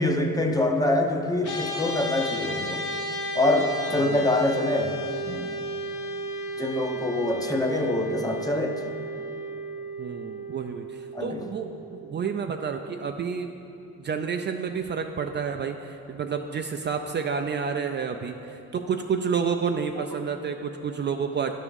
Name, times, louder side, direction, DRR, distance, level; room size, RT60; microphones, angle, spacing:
voice 1, 0.0-2.8 3.3-4.9 5.2-5.5 6.6-8.8 11.1-11.4, left 1 dB, 10° left, 3 dB, 0.7 m, -25 dB
sound 1, 1.4-12.9, equal, 75° left, 1.2 m, -34 dB
voice 2, 4.0-4.3 10.0-13.5 14.0-21.6, right 6 dB, 35° right, 5 dB, 0.4 m, -30 dB
10.5 x 3.6 x 7.0 m, 2.8 s
cardioid pair, 90°, 30 cm